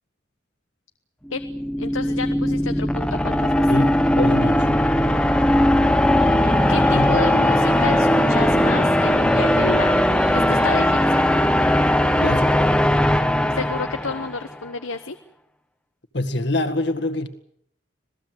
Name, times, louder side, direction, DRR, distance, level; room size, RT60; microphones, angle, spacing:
sound 1, 1.3-14.4, left 1 dB, 5° left, 1.0 m, -19 dB
voice 1, 1.8-3.7 6.7-11.2 13.5-15.2, left 3 dB, 85° left, 1.1 m, -31 dB
voice 2, 3.7-4.7 6.9-7.2 12.2-12.6 16.1-17.3, left 1 dB, 60° left, 2.0 m, -25 dB
sound 2, 6.2-12.3, right 2 dB, 35° right, 2.3 m, -40 dB
27.0 x 18.0 x 8.0 m
head